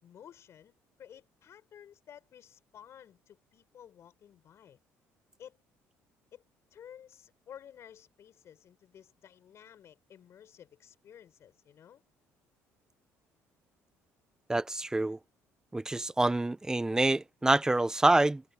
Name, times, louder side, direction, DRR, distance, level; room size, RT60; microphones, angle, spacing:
voice 1, 0.0-4.8 5.4-5.6 6.3-6.4 6.7-12.0, left 9 dB, 55° left, 4.7 m, -53 dB
voice 2, 14.5-15.2 15.7-18.4, right 2 dB, 10° right, 1.0 m, -26 dB
cardioid pair, 100°, 6 cm